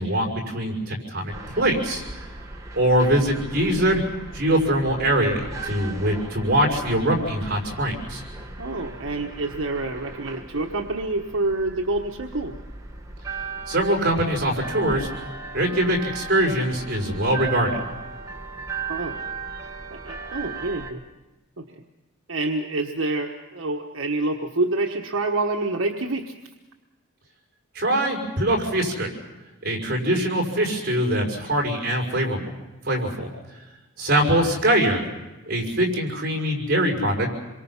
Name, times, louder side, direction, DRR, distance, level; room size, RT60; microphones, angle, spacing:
voice 1, 0.0-2.0 2.7-4.0 4.3-8.2 13.7-15.1 15.5-17.8 27.7-29.1 29.6-32.4 32.8-33.3 34.0-35.1 35.5-37.3, right 1 dB, 40° right, 1 dB, 5.8 m, -23 dB
sound 1, 1.3-20.9, right 4 dB, 15° right, 1.7 m, -37 dB
voice 2, 8.6-12.5 18.9-19.2 20.0-21.0 21.6-21.7 22.3-26.3, right 2 dB, 70° right, 1 dB, 1.4 m, -27 dB
27.0 x 23.5 x 5.8 m, 1.1 s
head